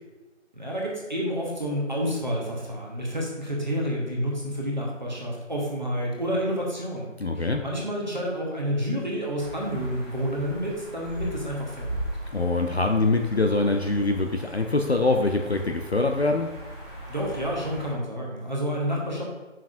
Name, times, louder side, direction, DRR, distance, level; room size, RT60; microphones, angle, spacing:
voice 1, 0.5-7.1 7.3-12.0 17.1-19.2, equal, 35° right, -3 dB, 1.2 m, -29 dB
voice 2, 7.2-7.6 12.3-16.5, left 2 dB, 55° left, 4 dB, 0.5 m, -24 dB
sound 1, 9.4-17.9, right 1 dB, 40° left, 2.0 m, -39 dB
7.0 x 5.9 x 2.6 m, 1.1 s
figure-of-eight pair, 180°, 38 cm